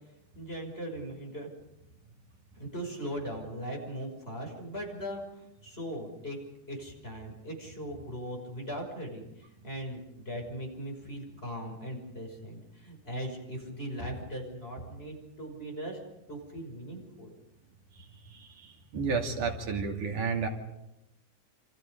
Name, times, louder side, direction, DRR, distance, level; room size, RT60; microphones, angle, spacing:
voice 1, 0.3-1.5 2.6-5.2 5.6-6.4 6.7-9.3 9.6-16.0 16.3-17.3, equal, 15° left, 1 dB, 6.0 m, -39 dB
voice 2, 18.3-20.5, right 5 dB, 75° right, 2 dB, 4.1 m, -32 dB
28.5 x 27.0 x 5.3 m, 0.88 s
omnidirectional pair, 3.5 m